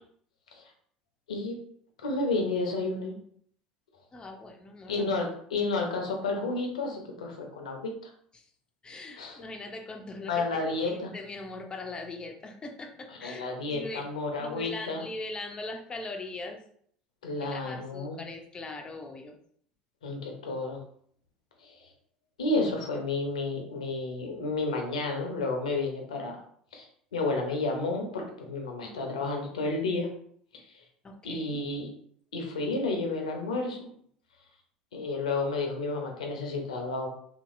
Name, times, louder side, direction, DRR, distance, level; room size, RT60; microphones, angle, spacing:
voice 1, 2.0-3.1 4.9-7.9 9.2-9.4 10.3-11.1 13.2-15.0 17.2-18.2 20.0-20.8 21.6-21.9 22.4-26.4 26.7-26.9 27.1-30.1 30.5-30.8 31.2-31.9 32.3-33.9 34.9-37.1, left 3 dB, 80° left, 2 dB, 0.6 m, -31 dB
voice 2, 4.1-5.0 8.3-8.5 8.8-14.1 14.4-16.6 17.4-19.4 31.0-31.6, left 2 dB, 25° left, 3 dB, 0.5 m, -41 dB
2.9 x 2.7 x 2.5 m, 0.63 s
figure-of-eight pair, 70°, 4 cm